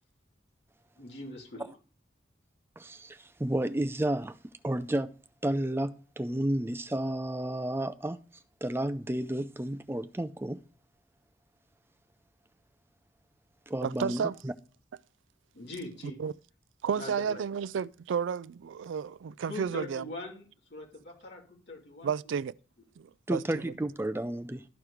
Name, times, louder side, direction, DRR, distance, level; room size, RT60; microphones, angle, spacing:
voice 1, 1.0-1.7 15.5-16.2 17.0-17.4 19.5-22.1, left 2 dB, 60° left, 3.0 m, -42 dB
voice 2, 2.8-4.4 4.6-5.1 5.4-8.2 8.6-10.6 13.7-14.5 23.3-24.7, right 1 dB, 10° right, 0.4 m, -31 dB
voice 3, 13.8-14.4 16.2-16.3 16.8-20.0 22.0-22.5 23.0-23.6, right 7 dB, 80° right, 0.3 m, -32 dB
13.0 x 4.7 x 4.9 m
head